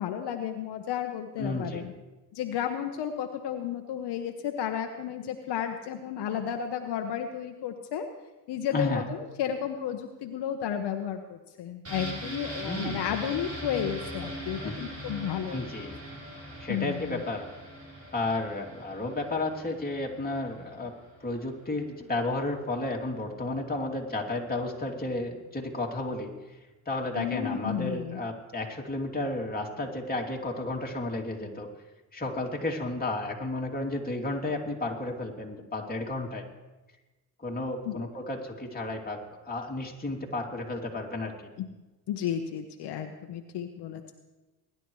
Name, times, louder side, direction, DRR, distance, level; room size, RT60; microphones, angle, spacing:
voice 1, 0.0-1.9 2.3-8.1 8.5-15.6 16.7-17.2 27.2-28.2 37.8-38.0 41.6-41.7 42.1-44.1, left 9 dB, 70° left, 5 dB, 1.1 m, -32 dB
voice 2, 1.4-1.8 8.7-9.0 12.6-12.9 14.6-14.7 15.5-15.9 16.6-17.5 18.1-20.9 21.2-26.6 26.9-31.7 32.1-36.4 37.4-41.3, left 2 dB, 20° left, -1 dB, 2.8 m, -32 dB
sound 1, 11.8-21.5 21.8-21.9, right 1 dB, 35° right, 5.0 m, -41 dB
21.5 x 11.0 x 3.2 m, 1.1 s
supercardioid pair, 70°, 42 cm